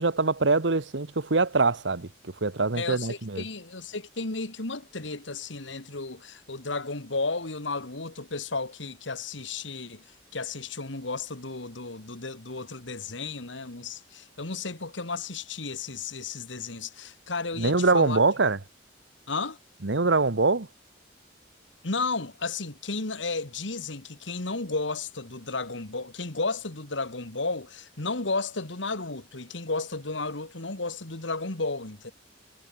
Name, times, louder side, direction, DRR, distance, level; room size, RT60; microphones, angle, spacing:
voice 1, 0.0-2.1 2.4-3.4 17.6-18.6 19.8-20.7, right 3 dB, 75° right, 1.3 m, -23 dB
voice 2, 2.7-10.0 10.3-18.2 19.3-19.6 21.8-32.1, left 3 dB, 85° left, 2.4 m, -33 dB
head